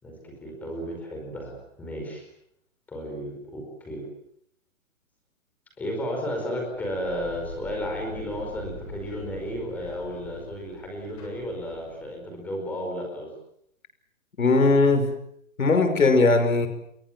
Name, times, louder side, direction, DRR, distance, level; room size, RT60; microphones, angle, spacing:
voice 1, 0.0-2.2 2.9-4.0 5.8-13.3, equal, 5° left, 1 dB, 4.9 m, -33 dB
sound 1, 6.7-12.3, left 2 dB, 20° left, 7.2 m, -43 dB
voice 2, 14.4-15.1 15.6-16.7, left 3 dB, 85° left, 8 dB, 5.6 m, -19 dB
30.0 x 22.5 x 7.5 m, 0.73 s
hypercardioid pair, 180°, 40 cm